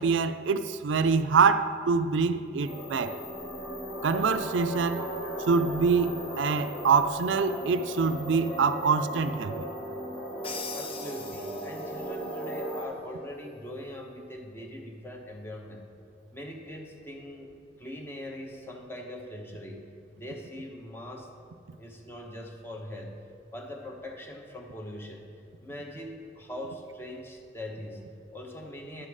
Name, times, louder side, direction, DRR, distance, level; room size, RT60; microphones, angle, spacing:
voice 1, 0.0-3.2 4.0-5.0 5.4-9.7, right 5 dB, 85° right, 0.4 m, -25 dB
sound 1, 2.6-12.8, right 1 dB, 55° left, 2.1 m, -37 dB
Crash cymbal, 10.4-12.1, left 5 dB, 30° left, 0.6 m, -41 dB
voice 2, 10.7-15.9 16.3-17.5 17.8-19.9 20.2-21.3 21.7-23.2 23.5-25.3 25.6-29.1, left 1 dB, 10° left, 0.9 m, -41 dB
11.0 x 7.6 x 4.9 m
head